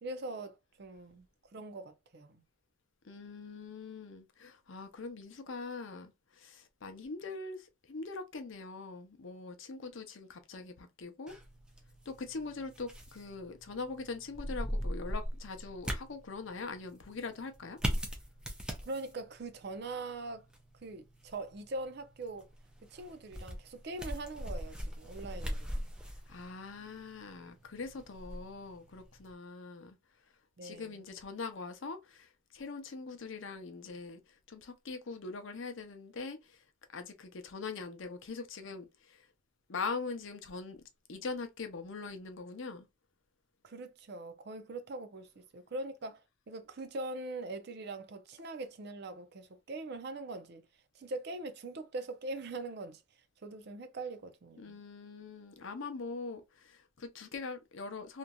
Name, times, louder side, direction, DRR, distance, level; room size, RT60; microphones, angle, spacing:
voice 1, 0.0-1.3 1.5-2.4 18.8-20.5 20.8-22.5 22.9-25.9 30.6-31.0 43.6-50.6 50.9-53.0 53.4-54.8, right 2 dB, 50° right, 0.5 m, -42 dB
voice 2, 3.0-11.4 12.1-17.8 26.3-30.0 30.6-39.3 39.7-40.8 41.1-42.9 54.6-58.2, left 4 dB, 65° left, 0.6 m, -42 dB
sound 1, 11.3-29.3, equal, 5° right, 0.5 m, -41 dB
3.0 x 2.5 x 2.2 m
head